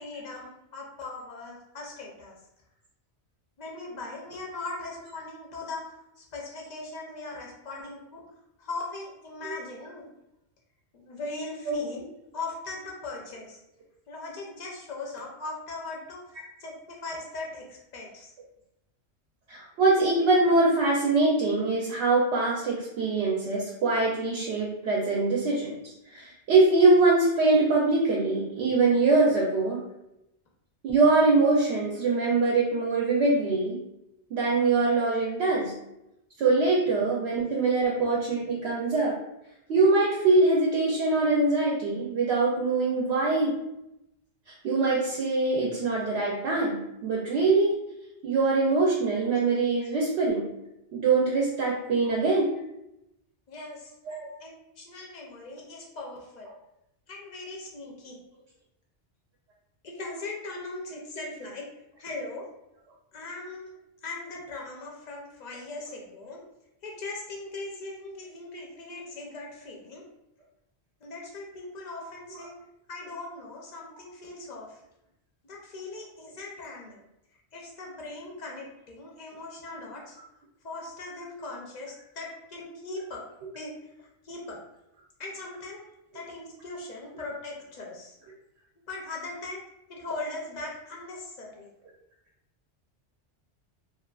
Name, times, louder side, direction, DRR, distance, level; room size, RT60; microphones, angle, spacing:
voice 1, 0.0-2.3 3.6-5.8 6.2-8.2 8.6-10.1 10.9-12.0 12.3-13.6 14.1-18.3 53.5-54.0 54.4-56.5 57.1-58.2 59.8-61.7 62.0-62.5 63.1-63.7 64.0-66.4 66.8-70.0 71.0-72.5 72.9-74.8 75.5-77.1 77.5-80.2 80.6-83.2 83.5-84.6 85.2-85.8 86.1-88.2 88.9-89.6 89.9-91.7, left 3 dB, 50° left, -2 dB, 0.5 m, -39 dB
voice 2, 19.5-29.8 30.8-33.8 34.3-35.7 36.4-39.1 39.7-43.5 44.6-47.7 48.2-50.4 50.9-52.5 54.1-54.3, right 3 dB, 70° right, -3 dB, 0.8 m, -23 dB
2.5 x 2.4 x 2.3 m, 0.86 s
omnidirectional pair, 1.2 m